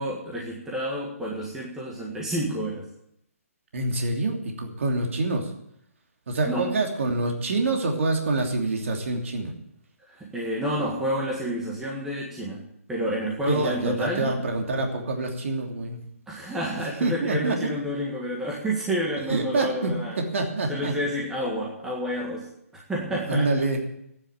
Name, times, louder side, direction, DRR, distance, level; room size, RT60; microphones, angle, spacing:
voice 1, 0.0-2.9 6.5-6.7 10.1-14.3 16.3-20.2 20.7-23.5, equal, 5° right, -5 dB, 1.7 m, -29 dB
voice 2, 3.7-5.5 6.3-9.5 13.4-16.0 17.0-17.7 19.3-20.9 23.1-23.8, right 2 dB, 60° right, 2 dB, 2.9 m, -26 dB
13.5 x 9.9 x 8.9 m, 0.76 s
hypercardioid pair, 170°, 8 cm